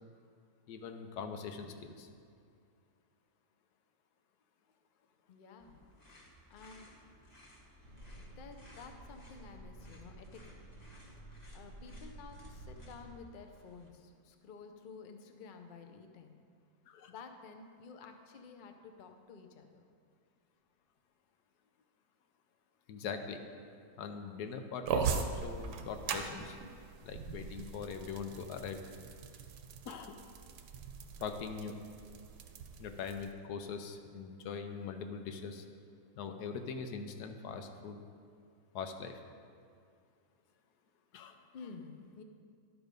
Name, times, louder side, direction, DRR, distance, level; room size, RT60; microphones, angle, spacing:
voice 1, 0.7-2.1 16.9-17.1 22.9-23.4 24.0-26.6 27.0-28.9 29.8-30.2 31.2-31.8 32.8-35.7 36.2-38.0 38.7-39.2 41.1-41.4, left 6 dB, 85° left, 6 dB, 1.3 m, -42 dB
voice 2, 5.3-5.8 6.5-6.9 8.2-10.6 11.5-16.4 17.1-19.8 41.5-42.2, left 5 dB, 60° left, 6 dB, 0.5 m, -52 dB
sound 1, 5.6-13.9, left 1 dB, 30° left, 1.3 m, -60 dB
sound 2, 7.8-13.2, right 1 dB, 25° right, 1.1 m, -52 dB
sound 3, 24.9-33.3, right 6 dB, 85° right, 1.2 m, -40 dB
11.5 x 4.7 x 5.2 m, 2.3 s
omnidirectional pair, 1.7 m